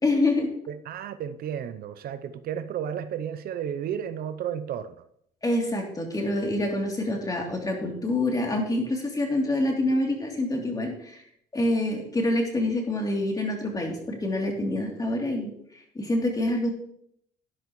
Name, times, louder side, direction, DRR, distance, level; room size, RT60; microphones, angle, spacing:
voice 1, 0.0-0.5 5.4-11.2 11.5-16.7, left 1 dB, 20° left, 3.0 m, -26 dB
voice 2, 0.7-5.0, right 9 dB, 65° right, 0.6 m, -33 dB
12.5 x 10.5 x 3.1 m
cardioid pair, 110°, 17 cm